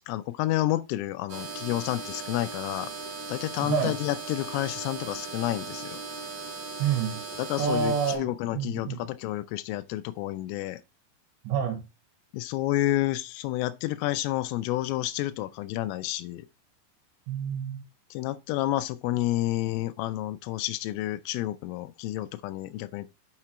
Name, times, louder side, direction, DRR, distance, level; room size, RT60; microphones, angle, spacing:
voice 1, 0.0-2.9 3.3-6.0 7.4-10.8 12.3-16.5 18.1-23.1, left 15 dB, 85° left, 3.2 m, -30 dB
sound 1, 1.3-8.2, right 4 dB, 50° right, 2.1 m, -38 dB
voice 2, 3.6-3.9 6.8-7.2 7.6-9.0 11.4-11.8 17.3-17.8, right 7 dB, 70° right, 3.2 m, -28 dB
7.1 x 6.7 x 3.0 m
omnidirectional pair, 5.8 m